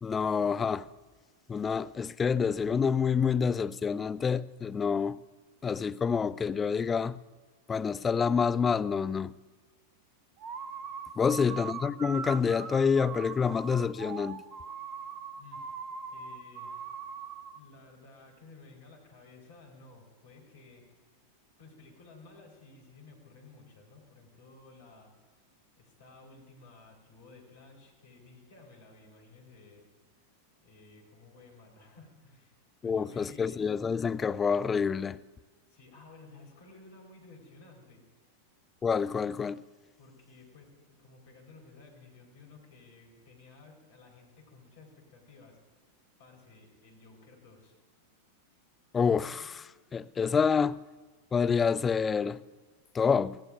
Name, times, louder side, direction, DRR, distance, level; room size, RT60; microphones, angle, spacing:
voice 1, 0.0-0.9 1.5-5.2 5.6-7.2 7.7-9.3 11.2-14.4 32.8-35.2 38.8-39.6 48.9-50.8 51.3-52.4 52.9-53.4, left 6 dB, 20° left, 0.4 m, -28 dB
sound 1, 10.4-17.6, right 6 dB, 40° right, 1.1 m, -41 dB
voice 2, 15.4-15.8 16.1-17.0 17.5-20.8 21.6-25.1 25.8-29.9 30.6-33.6 35.7-38.1 40.0-45.6 46.2-47.8, left 3 dB, 55° left, 4.6 m, -55 dB
26.0 x 17.0 x 2.6 m
figure-of-eight pair, 90°, 0 cm